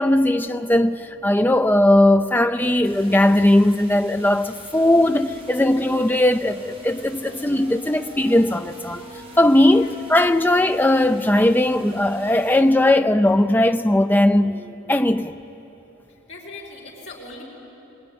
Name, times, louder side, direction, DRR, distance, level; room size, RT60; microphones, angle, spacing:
voice 1, 0.0-9.0 9.4-14.6 14.9-15.3, left 1 dB, 10° left, 0.5 m, -18 dB
sound 1, 2.8-12.6, right 1 dB, 30° right, 5.3 m, -47 dB
sound 2, 4.7-14.7, left 2 dB, 10° right, 1.7 m, -43 dB
voice 2, 9.7-10.0 16.1-17.4, left 2 dB, 60° left, 5.1 m, -40 dB
22.5 x 19.5 x 9.6 m
head